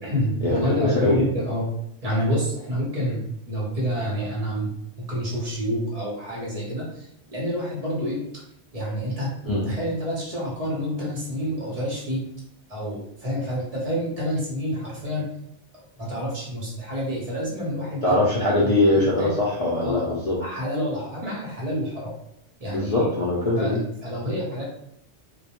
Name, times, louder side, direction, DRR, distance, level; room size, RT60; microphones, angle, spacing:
voice 1, 0.0-1.7 2.0-8.2 8.7-9.3 9.6-12.2 12.7-15.3 16.0-18.2 18.6-19.3 19.8-22.1 22.6-23.1 23.6-24.6, equal, 35° right, -4 dB, 0.8 m, -28 dB
voice 2, 18.0-20.4 22.7-23.8, left 2 dB, 70° left, -5 dB, 0.3 m, -22 dB
2.2 x 2.1 x 2.8 m, 0.74 s
omnidirectional pair, 1.2 m